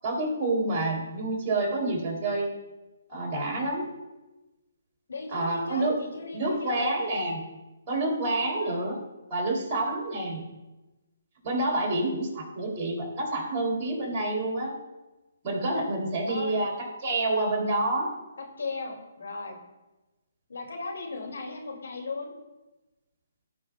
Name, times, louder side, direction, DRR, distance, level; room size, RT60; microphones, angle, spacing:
voice 1, 0.0-2.5 3.1-3.9 5.3-6.0 6.3-7.4 7.9-9.0 9.3-10.4 11.4-14.7 15.4-18.1, right 2 dB, 30° right, -1 dB, 3.0 m, -28 dB
voice 2, 5.1-7.0 8.6-8.9 11.7-12.0 16.3-16.6 18.4-19.6 20.5-22.3, left 3 dB, 70° left, 0 dB, 2.4 m, -37 dB
16.5 x 5.6 x 2.3 m, 1.1 s
figure-of-eight pair, 140°, 0 cm